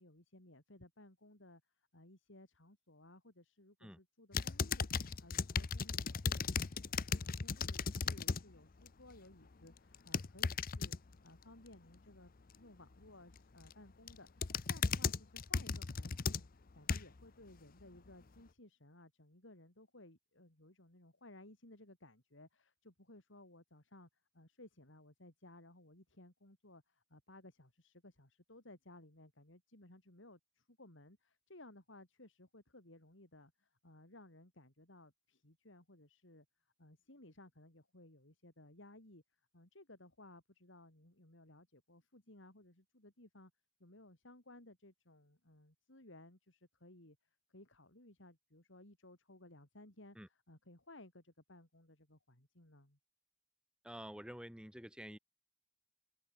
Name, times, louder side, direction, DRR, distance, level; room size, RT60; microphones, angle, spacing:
voice 1, 0.0-16.5 16.7-24.1 24.3-36.5 36.8-39.2 39.5-43.5 43.8-47.2 47.5-53.0, left 1 dB, 65° left, 4.5 m, -59 dB
sound 1, 4.3-8.4 8.8-9.2 9.9-11.0 13.4-13.7 14.1-17.2 17.8-17.9, left 5 dB, 45° left, 0.7 m, -36 dB
voice 2, 53.8-55.2, equal, 5° right, 1.8 m, -49 dB
head